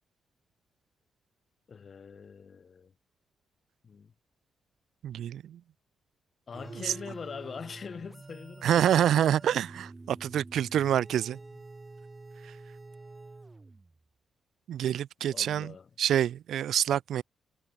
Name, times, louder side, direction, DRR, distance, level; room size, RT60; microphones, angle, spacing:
voice 1, 1.7-2.9 3.8-4.1 6.5-8.8 11.5-11.6 15.3-15.9, left 6 dB, 40° left, 5.2 m, -43 dB
voice 2, 5.0-5.6 8.6-11.4 14.7-15.7 16.0-17.2, right 10 dB, 75° right, 0.6 m, -27 dB
sound 1, 6.5-14.0, right 3 dB, 20° right, 5.5 m, -47 dB
cardioid pair, 130°, 0 cm